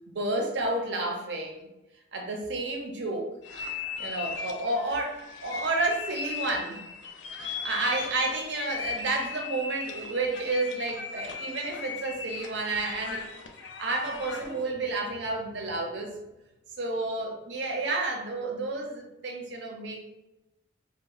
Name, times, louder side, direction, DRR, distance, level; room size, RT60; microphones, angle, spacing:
voice 1, 0.1-1.7 2.1-3.3 4.0-6.8 7.4-13.2 13.8-16.2 16.8-20.0, right 2 dB, 60° right, 1 dB, 0.6 m, -31 dB
sound 1, 3.4-14.6, left 5 dB, 60° left, 0.3 m, -38 dB
2.0 x 2.0 x 3.7 m, 0.93 s
head